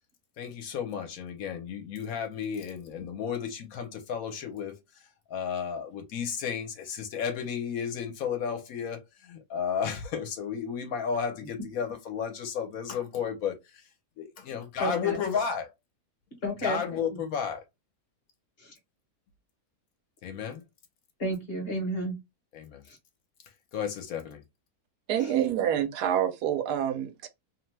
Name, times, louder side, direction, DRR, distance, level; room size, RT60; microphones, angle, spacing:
voice 1, 0.4-4.8 5.3-13.8 14.2-15.7 16.6-17.6 20.2-20.6 22.5-22.8 23.7-24.4, left 7 dB, 70° left, 1.1 m, -33 dB
voice 2, 14.8-15.2 16.4-16.8 17.1-17.2 18.6-18.7 21.2-22.2 22.9-23.0 25.2-25.3, right 1 dB, 45° left, 1.0 m, -32 dB
voice 3, 25.1-27.3, right 10 dB, 85° right, 1.1 m, -27 dB
2.8 x 2.1 x 3.1 m
omnidirectional pair, 1.7 m